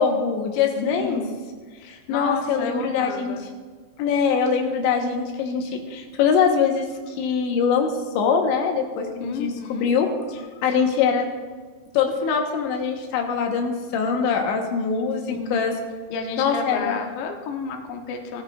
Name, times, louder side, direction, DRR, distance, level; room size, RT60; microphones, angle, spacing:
voice 1, 0.0-1.2 1.8-3.3 4.0-11.3 11.9-15.8 16.4-17.0, left 6 dB, 90° left, 3 dB, 3.6 m, -23 dB
voice 2, 0.8-1.4 1.8-3.4 9.2-9.9 15.3-15.7 16.1-18.4, left 4 dB, 70° left, 3 dB, 2.3 m, -31 dB
18.5 x 14.0 x 2.6 m, 1.5 s
omnidirectional pair, 5.1 m